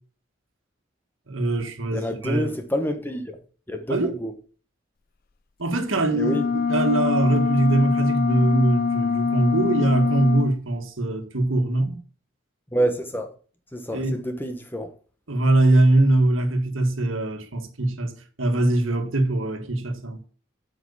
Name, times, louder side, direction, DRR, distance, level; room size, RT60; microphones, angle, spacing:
voice 1, 1.3-2.5 3.9-4.2 5.6-6.4 6.7-12.0 13.9-14.2 15.3-20.2, right 2 dB, 80° right, 1.8 m, -22 dB
voice 2, 1.9-3.4 3.7-4.3 6.2-6.5 12.7-13.3 13.7-14.9, equal, 10° left, 1.1 m, -27 dB
sound 1, 6.1-10.5, left 5 dB, 45° left, 0.4 m, -24 dB
8.0 x 6.5 x 7.1 m
head